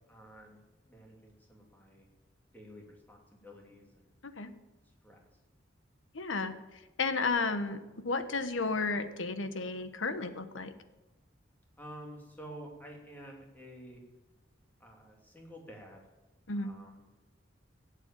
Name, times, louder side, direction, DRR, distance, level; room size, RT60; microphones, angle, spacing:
voice 1, 0.1-2.1 2.5-4.1 4.8-5.2 11.8-14.0 14.8-16.0 16.5-17.1, right 1 dB, 10° left, 0 dB, 2.8 m, -50 dB
voice 2, 6.1-10.7 16.5-16.7, left 3 dB, 80° left, 10 dB, 1.2 m, -33 dB
15.5 x 8.2 x 8.8 m, 1.1 s
head